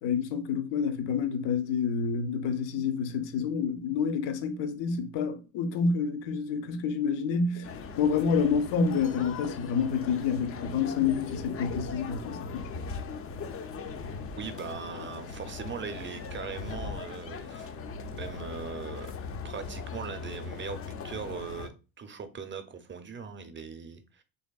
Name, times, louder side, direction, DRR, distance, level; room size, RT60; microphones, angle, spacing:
voice 1, 0.0-12.8, left 6 dB, 60° left, 0.7 m, -28 dB
sound 1, 7.6-21.7, left 5 dB, 30° left, 0.4 m, -39 dB
voice 2, 14.4-17.7 18.1-19.1 19.4-21.7 22.0-24.2, right 5 dB, 25° right, 0.5 m, -40 dB
3.1 x 2.7 x 2.3 m
hypercardioid pair, 55°, 48 cm